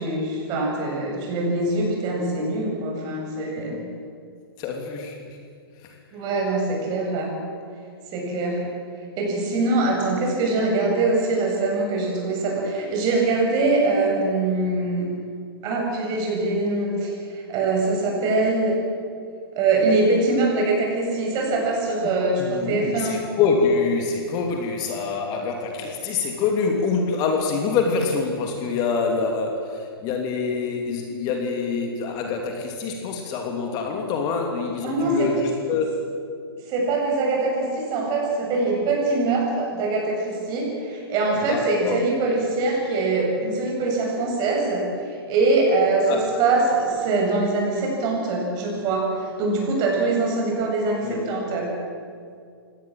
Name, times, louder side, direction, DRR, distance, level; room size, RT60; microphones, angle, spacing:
voice 1, 0.0-3.8 6.1-7.3 8.1-8.6 9.2-15.1 15.6-18.8 19.5-23.2 34.8-35.3 36.7-44.8 45.1-51.7, right 3 dB, 30° right, -1 dB, 7.7 m, -23 dB
voice 2, 4.6-5.4 22.4-35.9 41.5-42.0 46.1-46.2 51.0-51.2, left 5 dB, 30° left, 2 dB, 3.0 m, -25 dB
23.5 x 18.0 x 7.8 m, 2.3 s
hypercardioid pair, 125°, 13 cm